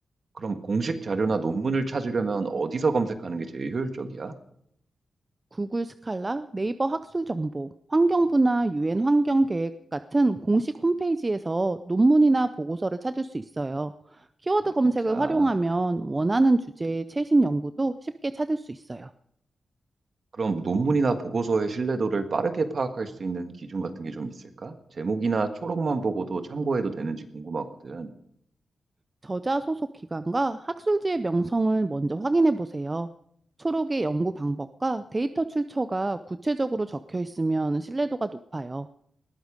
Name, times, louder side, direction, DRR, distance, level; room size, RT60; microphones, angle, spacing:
voice 1, 0.3-4.3 15.1-15.5 20.4-28.1, right 4 dB, 50° right, 8 dB, 1.7 m, -28 dB
voice 2, 5.5-13.9 14.4-19.1 29.2-29.8 30.1-33.1 33.6-38.9, right 2 dB, 25° right, 11 dB, 0.5 m, -25 dB
20.0 x 13.5 x 5.2 m, 0.71 s
wide cardioid pair, 120°, 0 cm